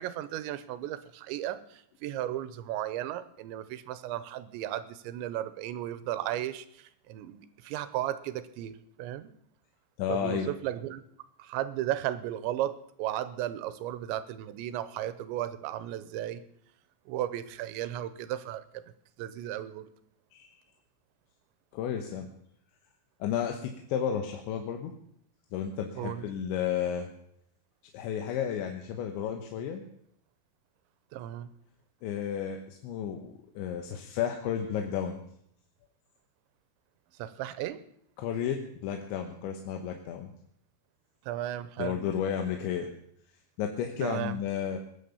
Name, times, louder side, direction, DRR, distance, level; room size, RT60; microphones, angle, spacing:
voice 1, 0.0-9.3 10.1-11.0 11.4-16.4 17.1-18.8 19.2-19.9 26.0-26.3 31.1-31.5 37.2-37.8 41.3-42.0 44.0-44.4, right 12 dB, 90° right, 14 dB, 3.2 m, -35 dB
voice 2, 10.0-10.5 20.3-20.5 21.7-22.3 23.2-24.9 25.5-27.1 27.9-29.8 32.0-35.2 38.2-40.3 41.8-42.9 43.6-44.8, left 8 dB, 90° left, 4 dB, 3.5 m, -32 dB
20.5 x 9.3 x 7.1 m, 0.70 s
omnidirectional pair, 5.1 m